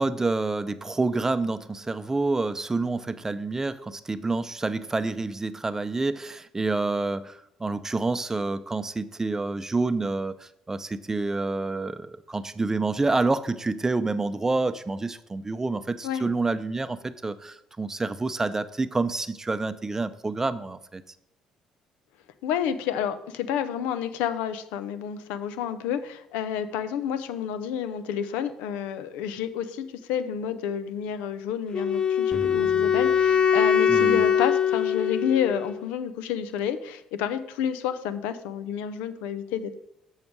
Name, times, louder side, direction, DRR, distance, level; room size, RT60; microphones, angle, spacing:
voice 1, 0.0-21.0 33.9-34.2, right 3 dB, 20° right, 13 dB, 0.6 m, -28 dB
voice 2, 22.4-39.7, left 9 dB, 80° left, 12 dB, 0.6 m, -30 dB
Wind instrument woodwind instrument, 31.7-35.8, left 7 dB, 40° left, 0.6 m, -22 dB
sound 1, 32.3-34.5, equal, 20° left, 1.6 m, -41 dB
7.1 x 6.4 x 4.7 m, 0.79 s
hypercardioid pair, 65°, 2 cm